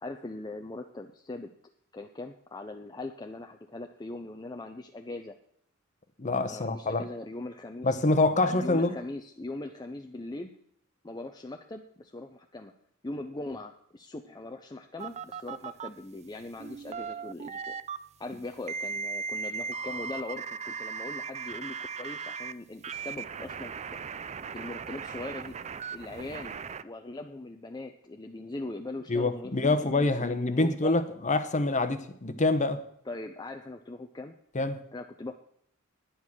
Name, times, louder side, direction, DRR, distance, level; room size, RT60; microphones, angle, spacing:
voice 1, 0.0-1.5 1.9-5.4 6.4-7.9 8.4-10.5 11.0-12.7 13.0-17.8 18.2-23.7 24.5-25.5 25.9-30.9 33.1-34.3 34.9-35.3, left 2 dB, 20° left, 0.6 m, -40 dB
voice 2, 6.2-7.0 7.8-9.0 29.1-32.8 34.5-34.8, left 2 dB, 35° left, 0.9 m, -26 dB
sound 1, 15.0-15.9 16.6-18.0 18.7-22.5 22.8-26.8, right 5 dB, 30° right, 0.4 m, -37 dB
10.0 x 9.7 x 6.1 m
head